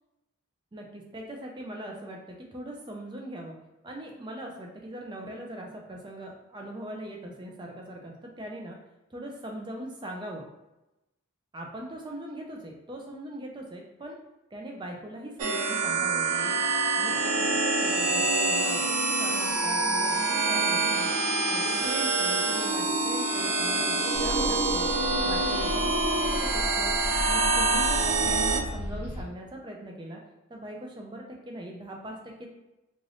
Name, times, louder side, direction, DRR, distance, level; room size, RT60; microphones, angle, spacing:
voice 1, 0.7-3.6 3.8-8.8 9.1-10.4 11.5-14.2 14.5-16.6 17.0-21.1 21.5-24.9 25.2-27.0 27.3-30.2 30.5-32.5, right 1 dB, 20° right, 0 dB, 0.4 m, -40 dB
sound 1, 15.4-28.6, right 3 dB, 85° right, 0.4 m, -26 dB
sound 2, 24.1-29.3, left 1 dB, 85° left, 0.4 m, -35 dB
2.5 x 2.4 x 3.3 m, 0.97 s
head